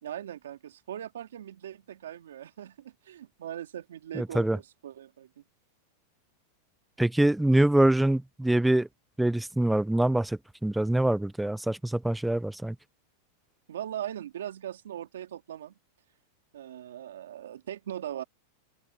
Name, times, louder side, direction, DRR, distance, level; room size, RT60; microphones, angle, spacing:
voice 1, 0.0-5.4 13.7-15.7 16.5-18.2, right 11 dB, 85° right, 2.6 m, -40 dB
voice 2, 4.1-4.6 7.0-8.9 9.2-12.8, right 1 dB, 5° right, 0.5 m, -24 dB
open air
hypercardioid pair, 125°, 0 cm